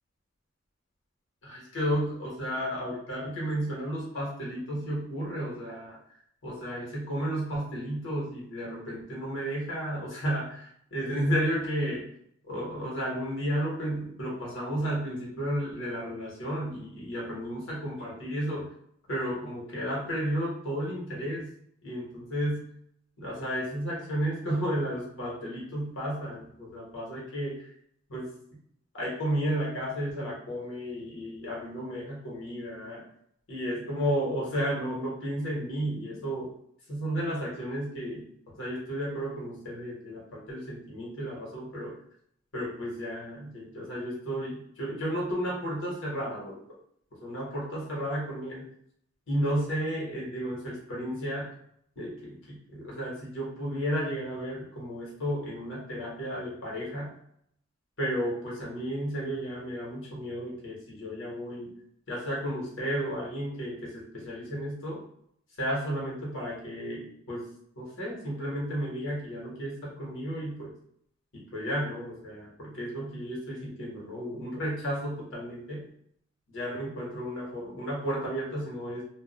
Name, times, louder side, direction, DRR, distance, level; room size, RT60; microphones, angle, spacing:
voice 1, 1.4-12.0 12.5-18.7 19.1-21.5 21.8-22.7 23.2-27.7 28.1-28.3 28.9-33.0 33.5-36.5 36.9-38.2 38.5-41.9 42.5-46.6 47.2-48.6 49.3-51.5 52.0-57.1 58.0-61.7 62.1-65.0 65.6-67.5 67.8-70.7 71.3-75.9 76.5-79.0, equal, 70° left, -5 dB, 1.1 m, -33 dB
2.5 x 2.0 x 3.8 m, 0.68 s
head